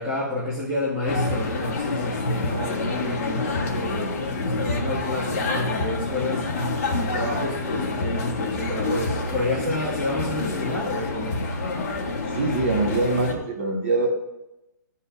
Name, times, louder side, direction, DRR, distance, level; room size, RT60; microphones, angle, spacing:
voice 1, 0.0-11.4, left 1 dB, 10° right, -10 dB, 1.5 m, -30 dB
sound 1, 1.1-13.3, left 2 dB, 40° left, 1.5 m, -27 dB
voice 2, 12.3-14.1, right 3 dB, 35° right, 0 dB, 1.4 m, -23 dB
14.5 x 5.5 x 2.5 m, 0.92 s
hypercardioid pair, 175°, 11 cm